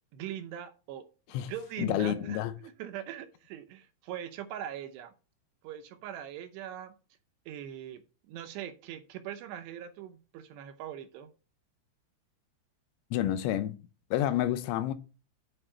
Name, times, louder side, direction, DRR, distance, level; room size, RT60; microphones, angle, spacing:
voice 1, 0.1-5.1 5.6-6.9 7.5-11.3, right 10 dB, 75° right, 2.7 m, -41 dB
voice 2, 1.8-2.5 13.1-13.8 14.1-14.9, left 12 dB, 85° left, 3.1 m, -29 dB
9.0 x 4.5 x 5.6 m
omnidirectional pair, 5.4 m